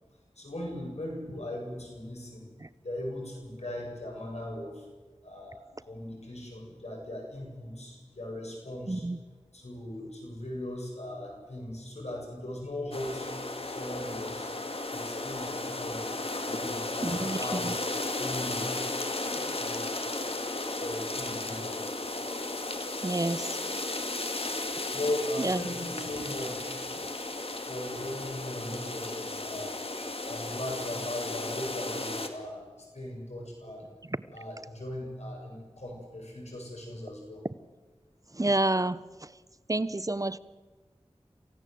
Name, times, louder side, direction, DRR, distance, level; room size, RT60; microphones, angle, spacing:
voice 1, 0.4-2.5 2.8-4.8 5.2-9.0 9.5-13.3 13.6-14.5 14.9-16.1 16.4-17.9 18.2-18.6 19.5-19.9 20.8-21.9 24.9-27.0 27.6-29.8 30.2-32.6 32.9-33.8 34.3-37.4, left 1 dB, 75° left, 7.6 m, -38 dB
sound 1, 12.9-32.3, left 2 dB, 60° left, 2.1 m, -34 dB
voice 2, 17.0-17.4 23.0-23.5 25.4-25.6 38.4-39.0 39.7-40.4, right 2 dB, 30° right, 0.7 m, -28 dB
27.5 x 16.0 x 7.8 m
wide cardioid pair, 45°, 11 cm